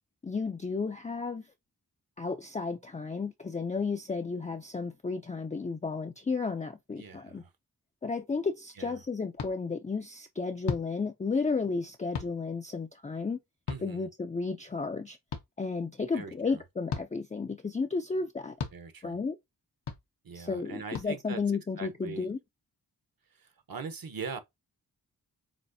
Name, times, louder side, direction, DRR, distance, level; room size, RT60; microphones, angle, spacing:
voice 1, 0.2-1.5 2.2-7.4 8.0-13.4 13.8-15.2 15.6-18.5 19.0-19.4 20.3-22.4, left 4 dB, 20° left, 0.3 m, -33 dB
voice 2, 6.9-7.5 8.8-8.9 13.7-14.1 16.1-16.6 18.7-19.2 20.2-21.4 21.8-22.3 23.3-24.4, right 5 dB, 60° right, 0.9 m, -41 dB
sound 1, 9.4-9.5 10.6-10.9 12.1-12.3 13.7-13.8 15.3-15.4 16.9-17.1 18.6-18.8 19.9-20.0 20.9-21.1, left 6 dB, 90° left, 0.9 m, -34 dB
7.2 x 2.5 x 2.7 m
wide cardioid pair, 110°, 39 cm